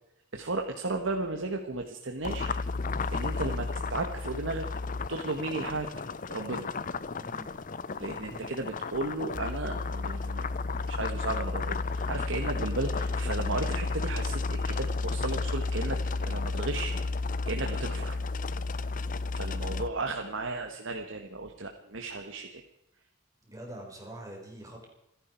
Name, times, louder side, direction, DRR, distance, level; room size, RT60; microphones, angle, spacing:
voice 1, 0.3-2.5 2.9-4.7 5.1-5.9 6.3-6.7 8.0-17.0 17.4-18.2 19.3-22.6, right 2 dB, 75° right, 3 dB, 1.6 m, -35 dB
sound 1, 2.2-19.9, left 3 dB, 40° left, 0.6 m, -32 dB
voice 2, 7.1-7.5 8.1-8.5 20.2-20.3 23.4-24.9, right 1 dB, 20° right, 0 dB, 4.5 m, -45 dB
28.0 x 11.0 x 4.6 m, 0.81 s
head